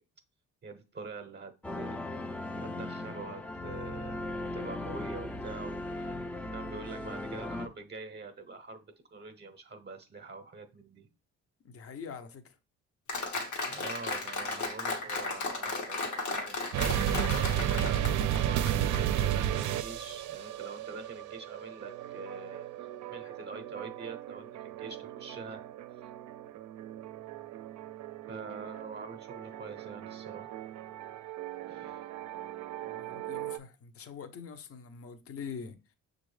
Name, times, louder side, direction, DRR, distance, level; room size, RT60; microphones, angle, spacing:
voice 1, 0.6-11.1 13.7-25.6 25.9-26.1 28.3-30.6 31.7-32.0, right 3 dB, 35° right, 0.7 m, -45 dB
sound 1, 1.6-7.7, left 2 dB, 5° left, 0.3 m, -38 dB
voice 2, 11.6-12.6 32.8-35.9, left 6 dB, 50° left, 0.7 m, -44 dB
Applause, 13.1-19.0, left 3 dB, 75° left, 1.2 m, -35 dB
sound 2, 16.7-33.6, right 11 dB, 75° right, 0.4 m, -34 dB
6.0 x 2.5 x 3.1 m
cardioid pair, 90°, 30 cm